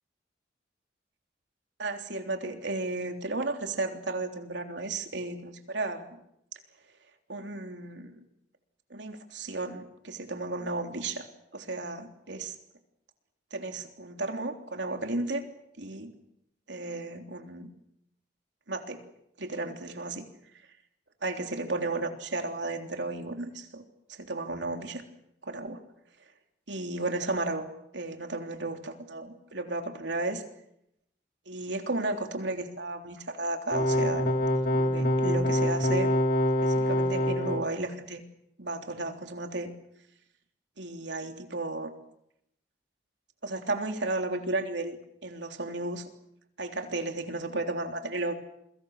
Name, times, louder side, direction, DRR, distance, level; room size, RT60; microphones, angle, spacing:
voice 1, 1.8-6.2 7.3-8.2 8.9-11.3 11.5-12.5 13.5-15.4 15.8-16.1 16.7-17.7 18.7-19.0 19.4-20.3 21.2-25.0 25.4-25.8 26.7-27.7 27.9-30.4 31.5-36.1 36.6-38.2 38.6-39.7 40.8-41.9 43.4-45.0 45.2-46.1 46.6-48.3, right 2 dB, 80° right, 4 dB, 3.4 m, -34 dB
sound 1, 33.7-37.6, left 1 dB, 55° left, 2.8 m, -25 dB
28.5 x 23.5 x 6.6 m, 0.78 s
head